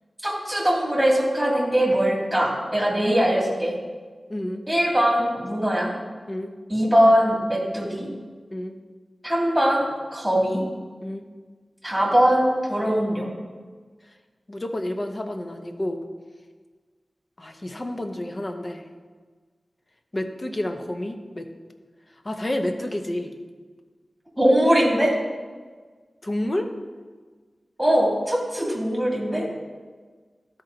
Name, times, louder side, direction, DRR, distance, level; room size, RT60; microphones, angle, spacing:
voice 1, 0.2-3.7 4.7-5.9 6.7-8.1 9.2-10.6 11.8-13.4 24.4-25.1 27.8-29.4, equal, 10° right, -3 dB, 2.6 m, -21 dB
voice 2, 4.3-4.6 6.3-6.5 8.5-8.8 11.0-11.2 14.5-16.1 17.4-18.9 20.1-21.5 22.2-23.3 26.2-26.7, left 1 dB, 35° left, 5 dB, 0.8 m, -29 dB
13.0 x 4.4 x 3.9 m, 1.4 s
wide cardioid pair, 70°, 0 cm